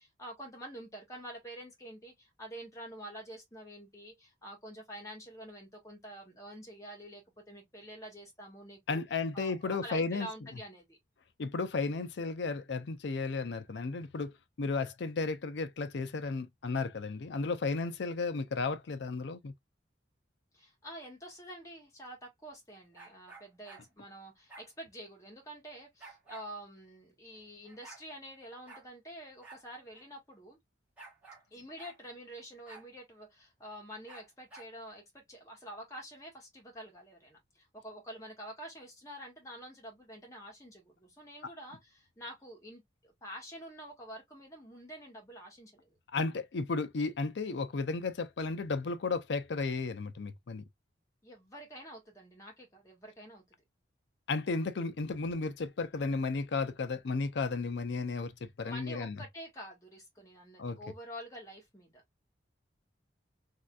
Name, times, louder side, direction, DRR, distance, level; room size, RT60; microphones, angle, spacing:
voice 1, 0.0-9.0 9.3-11.0 20.5-30.6 31.5-46.0 51.2-53.4 58.6-62.0, equal, 15° left, 1.3 m, -47 dB
voice 2, 8.9-10.3 11.4-19.5 46.1-50.6 54.3-59.2 60.6-60.8, left 4 dB, 70° left, 0.5 m, -34 dB
sound 1, 22.9-23.8 24.5-24.7 26.0-26.5 27.3-27.4 27.6-28.0 28.7-28.9 29.4-29.6 29.9-30.0 31.0-31.4 31.8-32.0 32.6-32.9 34.1-34.7, right 3 dB, 5° right, 1.5 m, -52 dB
3.3 x 2.7 x 2.3 m
head